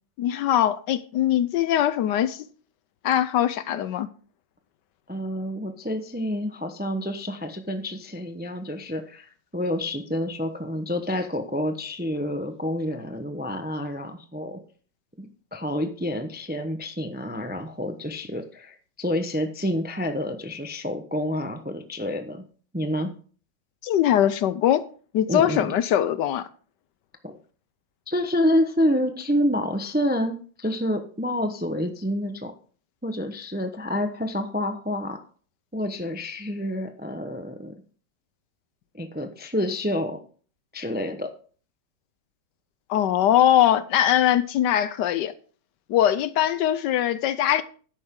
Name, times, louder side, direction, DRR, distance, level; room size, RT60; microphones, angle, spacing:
voice 1, 0.2-2.5 3.0-4.1 23.8-24.8 25.1-26.5 42.9-45.3 45.9-47.6, left 11 dB, 70° left, 1.2 m, -21 dB
voice 2, 5.1-14.6 15.2-22.4 22.7-23.1 25.3-25.7 27.2-27.4 28.1-32.5 33.0-35.2 35.7-37.7 38.9-40.2 40.7-41.3, equal, 10° right, 0.5 m, -28 dB
11.0 x 8.9 x 3.7 m
omnidirectional pair, 2.0 m